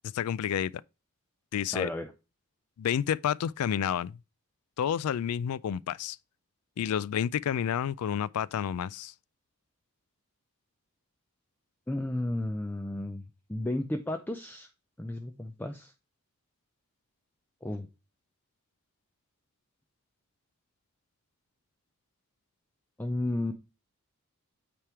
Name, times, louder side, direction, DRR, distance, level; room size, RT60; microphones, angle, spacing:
voice 1, 0.1-0.7 1.5-1.9 2.8-4.2 4.8-6.2 6.8-9.1, left 9 dB, 85° left, 0.3 m, -30 dB
voice 2, 1.7-2.1 11.9-13.2 13.5-14.7 15.0-15.9 17.6-17.9 23.0-23.5, left 1 dB, 10° left, 0.4 m, -33 dB
8.7 x 3.5 x 4.6 m
head